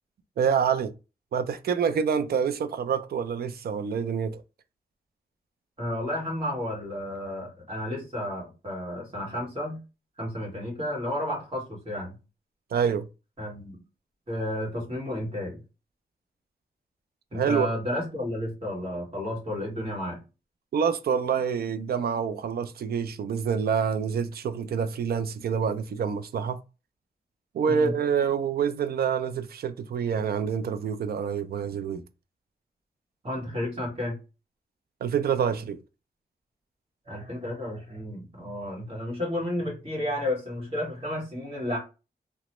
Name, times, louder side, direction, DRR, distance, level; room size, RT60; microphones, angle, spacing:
voice 1, 0.4-0.9 1.3-4.4 12.7-13.1 17.3-17.7 20.7-26.6 27.5-32.0 35.0-35.8, right 7 dB, 70° right, 0.4 m, -27 dB
voice 2, 5.8-9.8 10.2-12.1 13.4-13.8 14.3-15.6 17.3-20.2 27.6-27.9 33.2-34.2 37.0-41.8, left 1 dB, 35° right, 1.5 m, -32 dB
2.9 x 2.1 x 2.9 m
wide cardioid pair, 115°, 16 cm